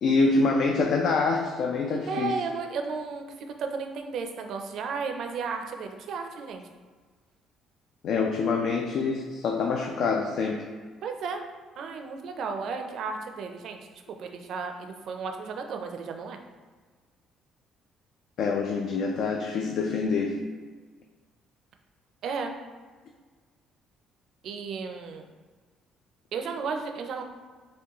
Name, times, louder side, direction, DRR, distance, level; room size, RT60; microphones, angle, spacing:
voice 1, 0.0-2.3 8.0-10.7 18.4-20.5, left 4 dB, 65° left, 1 dB, 0.4 m, -26 dB
voice 2, 2.1-6.6 11.0-11.4 11.8-13.8 14.1-16.4 22.2-22.6 24.4-25.2 26.3-27.2, right 5 dB, 65° right, 5 dB, 0.4 m, -34 dB
4.7 x 2.2 x 2.9 m, 1.4 s
cardioid pair, 110°, 0 cm